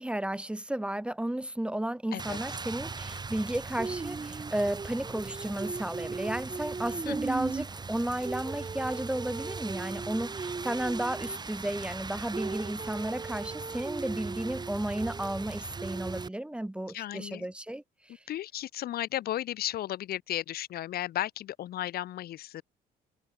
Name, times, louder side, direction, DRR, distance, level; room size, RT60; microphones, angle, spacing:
voice 1, 0.0-18.2, right 1 dB, 5° right, 1.7 m, -33 dB
Rain, 2.2-16.3, right 4 dB, 25° right, 7.2 m, -37 dB
voice 2, 16.9-17.5 18.3-22.6, left 13 dB, 65° left, 2.3 m, -34 dB
cardioid pair, 110°, 17 cm